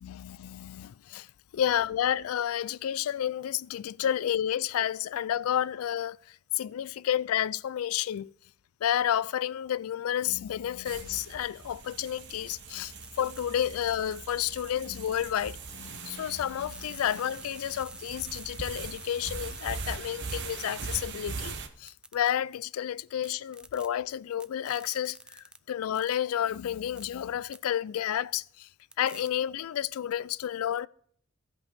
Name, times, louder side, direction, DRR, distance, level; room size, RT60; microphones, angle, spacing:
voice 1, 0.0-1.3 1.5-6.2 6.6-8.3 8.8-12.9 13.2-28.7 29.0-30.9, left 10 dB, 80° left, 0.3 m, -31 dB
sound 1, 10.8-21.7, right 4 dB, 55° right, 1.1 m, -41 dB
sound 2, 13.0-13.4 14.2-14.5 16.4-19.9 20.3-20.7 21.9-22.3 23.2-23.9 24.4-25.6 26.0-26.2 27.0-27.1 27.5-27.6 28.9-29.3, right 2 dB, 5° right, 0.3 m, -48 dB
15.0 x 5.4 x 4.1 m
head